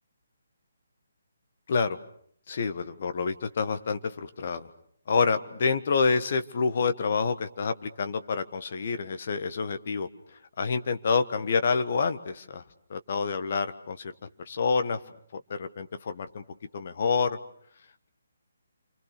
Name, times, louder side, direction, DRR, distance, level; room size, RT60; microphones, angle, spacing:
voice 1, 1.7-2.0 2.5-4.7 5.1-10.1 10.6-12.6 12.9-14.1 14.4-15.0 15.3-16.4 16.7-17.4, left 5 dB, 45° left, 9 dB, 1.5 m, -28 dB
28.5 x 26.5 x 6.8 m, 0.64 s
figure-of-eight pair, 140°, 0 cm